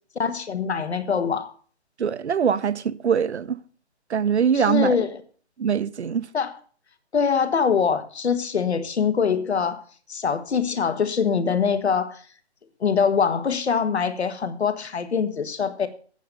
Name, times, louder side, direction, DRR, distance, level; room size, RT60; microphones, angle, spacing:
voice 1, 0.2-1.5 4.5-5.2 6.3-6.5 7.1-9.8 10.1-12.2 12.8-15.9, left 6 dB, 70° left, 1.6 m, -23 dB
voice 2, 2.0-3.6 4.1-5.0 5.6-6.3, right 7 dB, 75° right, 0.8 m, -22 dB
9.2 x 7.0 x 6.6 m
hypercardioid pair, 170°, 34 cm